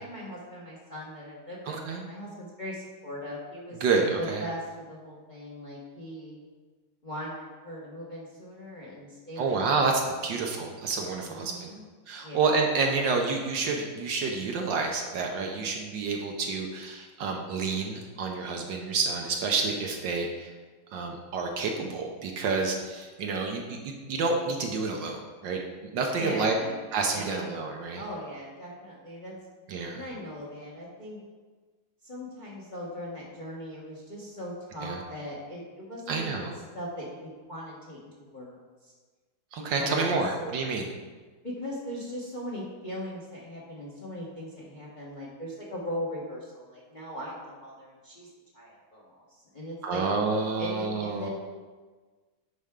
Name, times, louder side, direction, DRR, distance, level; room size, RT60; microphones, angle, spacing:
voice 1, 0.0-3.8 4.2-6.4 7.0-9.8 10.3-10.4 11.2-11.8 12.2-12.4 26.1-26.8 27.1-27.6 27.9-29.3 29.9-31.2 32.0-38.6 38.8-38.9 39.6-40.2 41.4-48.3 48.5-50.1 50.6-51.3, equal, 30° left, -4 dB, 0.9 m, -39 dB
voice 2, 1.7-2.1 3.8-4.4 9.4-11.7 12.1-20.5 20.9-25.6 25.9-26.6 26.9-28.0 29.7-30.0 34.8-35.0 36.1-36.5 39.5-40.9 49.8-51.3, right 4 dB, 70° right, 2 dB, 1.3 m, -29 dB
10.0 x 4.3 x 3.6 m, 1.4 s
omnidirectional pair, 2.3 m